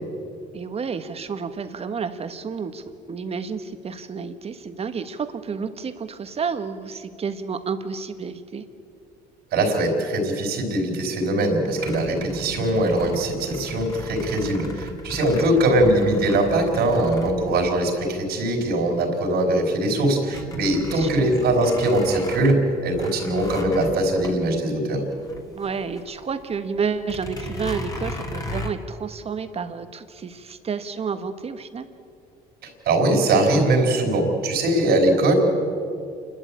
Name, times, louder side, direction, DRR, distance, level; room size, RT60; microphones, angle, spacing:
voice 1, 0.5-8.6 15.5-15.9 20.9-21.3 25.5-31.9, right 5 dB, 35° right, 9 dB, 1.5 m, -30 dB
voice 2, 9.5-25.0 32.6-35.3, right 1 dB, 70° right, 1 dB, 4.6 m, -21 dB
sound 1, 11.8-18.4 19.0-19.1 19.5-26.1 26.4-26.5 27.0-28.7, left 1 dB, 20° left, 2.6 m, -35 dB
28.5 x 12.5 x 8.7 m, 2.4 s
cardioid pair, 110°, 17 cm